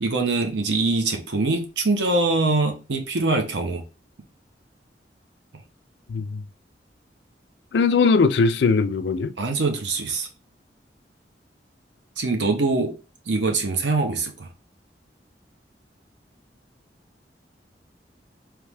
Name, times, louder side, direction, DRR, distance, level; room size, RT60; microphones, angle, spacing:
voice 1, 0.0-3.8 9.4-10.3 12.2-13.0 13.3-14.5, right 3 dB, 85° right, 0.8 m, -23 dB
voice 2, 6.1-6.4 7.7-9.3, left 4 dB, 75° left, 0.4 m, -20 dB
3.3 x 3.0 x 3.4 m
head